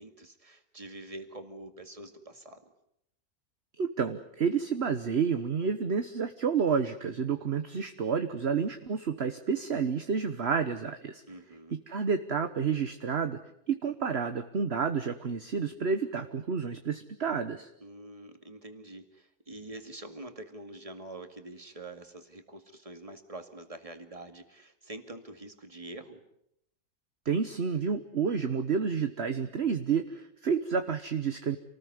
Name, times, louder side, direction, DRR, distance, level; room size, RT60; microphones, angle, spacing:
voice 1, 0.0-2.6 11.2-11.8 17.8-26.2, right 2 dB, 25° right, 7 dB, 2.4 m, -45 dB
voice 2, 3.8-11.2 11.7-13.4 13.7-17.7 27.2-31.6, right 6 dB, 50° right, 8 dB, 1.4 m, -30 dB
28.0 x 19.5 x 9.5 m, 0.78 s
omnidirectional pair, 1.5 m